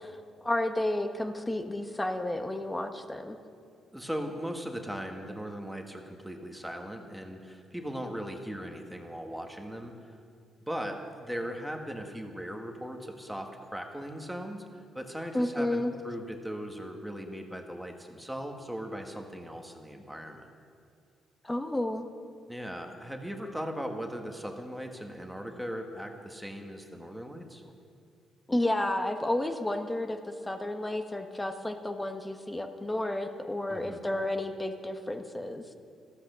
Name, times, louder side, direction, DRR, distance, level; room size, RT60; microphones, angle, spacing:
voice 1, 0.4-3.4 15.3-15.9 21.4-22.0 28.5-35.6, left 1 dB, 15° left, 6 dB, 1.1 m, -31 dB
voice 2, 3.9-10.2 10.7-20.5 22.5-27.6 33.7-34.0, equal, ahead, 3 dB, 1.6 m, -38 dB
14.0 x 11.5 x 6.9 m, 2.4 s
cardioid pair, 90°, 0 cm